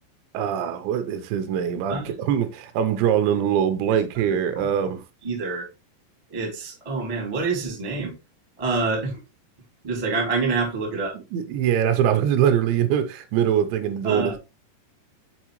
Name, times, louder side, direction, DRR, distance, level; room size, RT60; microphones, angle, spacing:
voice 1, 0.3-5.0 11.1-14.4, right 9 dB, 80° right, 2.9 m, -23 dB
voice 2, 5.2-5.6 6.3-8.1 8.6-9.2 9.8-11.1 14.0-14.4, right 4 dB, 25° right, 0.7 m, -26 dB
7.3 x 4.3 x 3.0 m
omnidirectional pair, 5.2 m